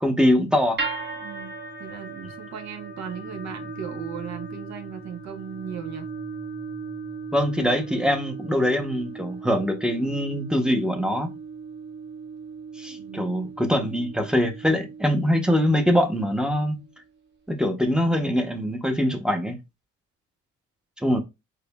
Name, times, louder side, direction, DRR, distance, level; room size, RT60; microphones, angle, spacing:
voice 1, 0.0-0.8 7.3-11.3 12.8-16.8 17.5-19.6 21.0-21.2, equal, 5° right, 0.7 m, -23 dB
sound 1, 0.8-17.0, right 4 dB, 40° right, 1.0 m, -38 dB
voice 2, 1.2-1.5 1.8-6.1 13.0-13.8, right 8 dB, 65° right, 0.6 m, -37 dB
4.8 x 2.6 x 2.2 m
cardioid pair, 90°, 30 cm